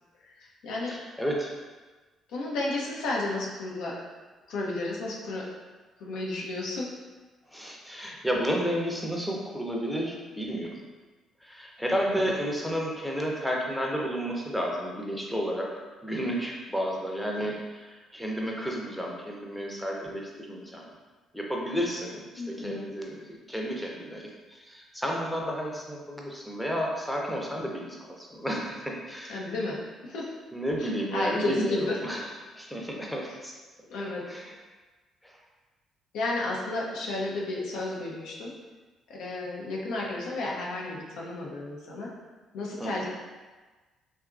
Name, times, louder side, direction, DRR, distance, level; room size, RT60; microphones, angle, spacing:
voice 1, 0.2-0.9 2.3-3.9 4.5-5.5 6.0-6.9 22.4-22.9 29.3-30.3 30.8-32.0 33.9-34.2 36.1-38.5 39.1-42.1 42.5-43.1, left 2 dB, 75° left, -3 dB, 0.5 m, -32 dB
voice 2, 0.9-1.5 7.5-10.7 11.4-15.7 16.0-20.9 21.3-29.6 30.5-32.2 32.5-33.5 34.3-34.6 35.2-35.3 42.8-43.1, equal, 5° left, -2 dB, 0.6 m, -32 dB
2.7 x 2.4 x 2.3 m, 1.3 s
hypercardioid pair, 50°, 0 cm